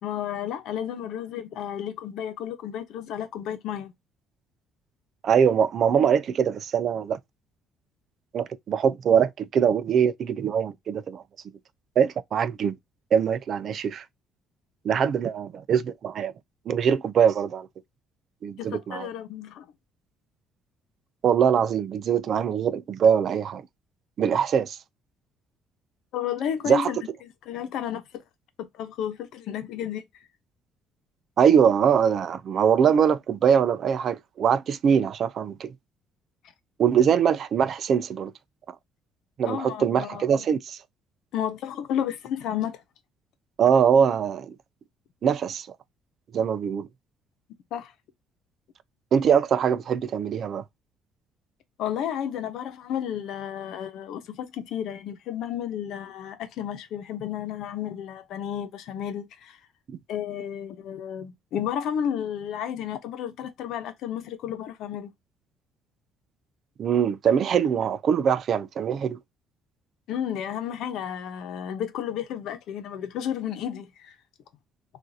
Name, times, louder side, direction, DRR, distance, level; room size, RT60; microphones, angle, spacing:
voice 1, 0.0-3.9 18.6-19.7 26.1-27.0 27.5-28.0 28.6-30.0 39.4-40.5 41.3-42.8 47.7-47.9 51.8-59.6 60.1-65.1 70.1-74.1, left 9 dB, 75° left, 0.9 m, -32 dB
voice 2, 5.2-7.2 8.3-11.2 12.0-12.7 13.1-14.0 14.8-16.3 16.7-17.7 18.4-19.1 21.2-23.6 24.2-24.8 26.7-26.9 31.4-35.7 36.8-38.3 38.7-38.8 39.4-40.8 43.6-44.5 45.2-45.7 46.3-46.9 49.1-50.6 59.9-60.0 66.8-69.2, right 7 dB, 50° right, 0.4 m, -22 dB
6.2 x 2.6 x 2.7 m
cardioid pair, 125°, 0 cm